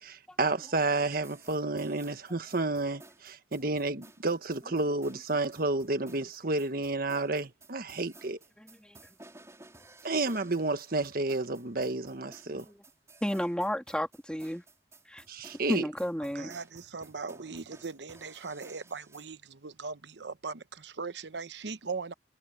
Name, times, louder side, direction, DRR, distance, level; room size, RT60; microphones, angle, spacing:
voice 1, 0.0-8.4 10.0-12.6 15.3-15.8, right 2 dB, 55° right, 1.5 m, -31 dB
sound 1, 1.1-19.3, right 2 dB, 15° right, 4.7 m, -56 dB
voice 2, 8.6-9.0 12.5-12.8 13.2-14.6 15.1-15.2 15.7-16.5, equal, 5° left, 2.6 m, -33 dB
voice 3, 16.3-22.1, right 4 dB, 80° right, 0.9 m, -39 dB
head